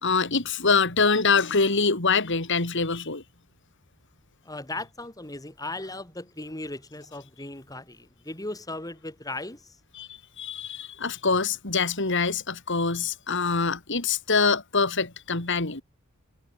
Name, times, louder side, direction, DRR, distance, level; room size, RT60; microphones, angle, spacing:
voice 1, 0.0-3.2 10.0-10.1 10.4-15.8, left 4 dB, 60° left, 3.1 m, -24 dB
voice 2, 4.4-9.8, left 2 dB, 15° left, 3.6 m, -37 dB
head